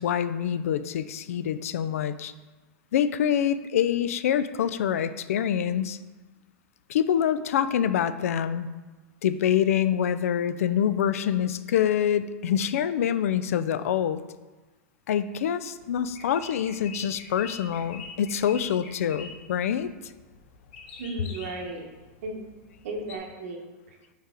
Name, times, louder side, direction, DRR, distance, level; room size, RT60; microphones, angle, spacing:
voice 1, 0.0-2.3 2.9-6.0 6.9-8.7 9.2-14.2 15.1-20.1, left 9 dB, 90° left, 13 dB, 0.4 m, -26 dB
sound 1, 15.8-23.2, left 4 dB, 50° left, 1.0 m, -46 dB
voice 2, 21.0-21.9 22.2-22.4 22.8-24.0, right 2 dB, 65° right, 1 dB, 1.2 m, -35 dB
5.5 x 4.5 x 3.8 m, 1.2 s
supercardioid pair, 165°, 8 cm